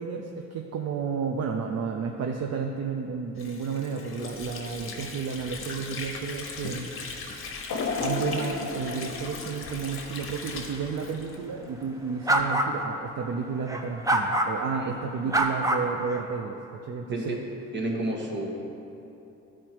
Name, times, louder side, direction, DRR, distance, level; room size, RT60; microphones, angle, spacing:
voice 1, 0.0-6.9 8.0-16.6 16.8-17.4, right 5 dB, 55° right, 3 dB, 0.6 m, -32 dB
Water / Sink (filling or washing), 3.4-11.9, left 4 dB, 45° left, 1.1 m, -39 dB
sound 1, 7.7-10.8 11.3-11.4 12.4-12.5, left 4 dB, 60° left, 0.7 m, -33 dB
sound 2, 12.3-12.7 13.7-14.5 15.3-16.2, right 1 dB, 10° right, 0.6 m, -24 dB
voice 2, 17.1-17.4 17.7-18.5, right 1 dB, 35° right, -1 dB, 1.5 m, -31 dB
12.0 x 4.5 x 4.5 m, 2.9 s
cardioid pair, 90°, 30 cm